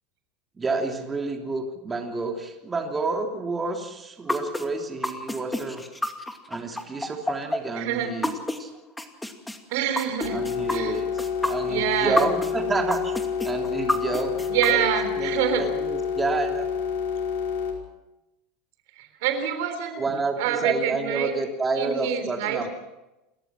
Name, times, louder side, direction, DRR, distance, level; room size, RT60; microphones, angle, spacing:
voice 1, 0.5-5.8 6.5-8.7 10.3-13.1 13.4-14.9 15.2-16.7 20.0-22.7, right 3 dB, 20° right, 3 dB, 3.2 m, -29 dB
sound 1, 4.3-8.6 9.0-12.5 12.9-14.7, left 1 dB, 10° left, 2.5 m, -28 dB
voice 2, 7.7-8.1 9.7-10.4 10.7-11.0 11.7-12.3 14.5-15.6 19.0-20.1 20.4-21.3 21.7-22.7, right 9 dB, 70° right, 8 dB, 3.6 m, -26 dB
sound 2, 10.2-17.7, left 6 dB, 75° left, 5.0 m, -28 dB
29.5 x 14.0 x 6.2 m, 0.98 s
hypercardioid pair, 85°, 0 cm